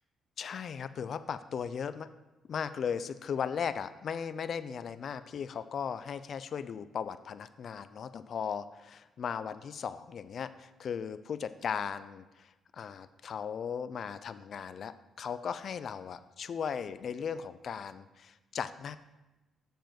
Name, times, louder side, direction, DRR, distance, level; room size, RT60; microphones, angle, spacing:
voice 1, 0.4-2.1 2.5-19.0, left 7 dB, 55° left, 13 dB, 0.4 m, -37 dB
6.9 x 5.1 x 5.9 m, 1.1 s
cardioid pair, 90°, 0 cm